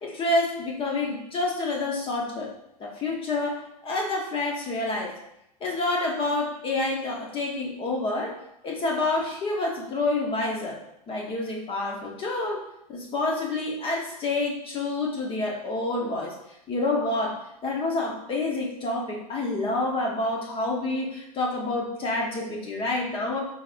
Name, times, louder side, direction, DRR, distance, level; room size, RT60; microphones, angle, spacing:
voice 1, 0.0-2.5 2.8-5.1 5.6-8.4 8.6-10.8 11.1-16.3 16.7-17.4 17.6-23.4, left 2 dB, 25° left, -1 dB, 1.0 m, -28 dB
5.2 x 3.5 x 2.5 m, 0.81 s
hypercardioid pair, 105°, 20 cm